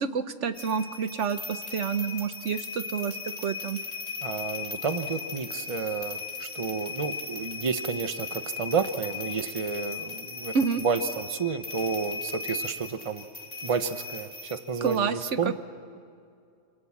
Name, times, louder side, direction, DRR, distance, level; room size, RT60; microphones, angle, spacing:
voice 1, 0.0-3.8 10.5-10.8 14.8-15.2 15.4-15.5, right 6 dB, 70° right, 11 dB, 1.2 m, -28 dB
sound 1, 0.5-15.0, left 5 dB, 30° left, 2.7 m, -38 dB
voice 2, 4.2-10.5 10.8-13.2 13.6-15.5, right 5 dB, 30° right, 10 dB, 1.0 m, -31 dB
28.0 x 26.5 x 7.4 m, 2.4 s
omnidirectional pair, 1.3 m